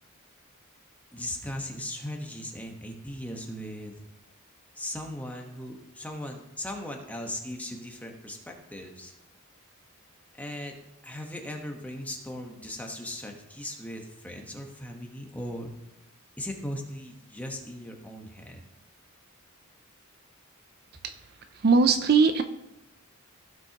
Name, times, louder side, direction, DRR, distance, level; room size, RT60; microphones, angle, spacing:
voice 1, 1.1-3.9 4.7-9.1 10.3-10.8 11.0-15.7 16.4-18.6, left 1 dB, 5° left, 2 dB, 1.1 m, -38 dB
voice 2, 21.6-22.4, right 4 dB, 45° right, 9 dB, 0.4 m, -20 dB
15.5 x 6.2 x 2.9 m, 0.89 s
head